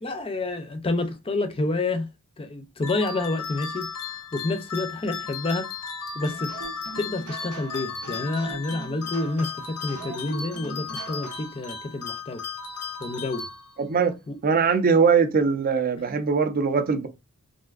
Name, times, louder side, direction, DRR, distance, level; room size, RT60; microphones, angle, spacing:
voice 1, 0.0-2.1 2.4-5.7 6.1-6.5 7.0-12.4 13.0-13.5 14.3-14.4, left 2 dB, 25° left, 0.5 m, -29 dB
sound 1, 2.8-14.0, left 6 dB, 90° left, 0.6 m, -36 dB
sound 2, 6.2-11.6, right 4 dB, 85° right, 0.8 m, -42 dB
voice 2, 13.8-14.2 14.4-17.1, right 5 dB, 40° right, 0.4 m, -21 dB
3.3 x 2.6 x 2.4 m
head